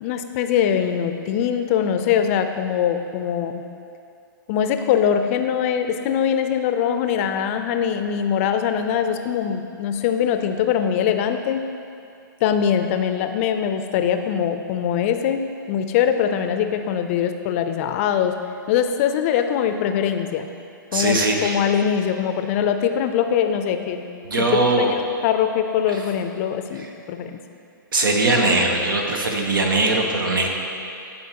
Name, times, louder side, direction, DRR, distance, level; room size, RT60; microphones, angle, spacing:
voice 1, 0.0-3.6 4.5-11.6 12.4-18.3 18.7-20.5 20.9-24.0 24.5-27.4, left 8 dB, 40° left, 7 dB, 0.4 m, -22 dB
voice 2, 20.9-21.6 24.3-24.9 25.9-26.0 26.7-26.9 27.9-30.5, right 2 dB, 85° right, 2 dB, 1.0 m, -20 dB
11.5 x 4.3 x 2.9 m, 2.5 s
hypercardioid pair, 130°, 11 cm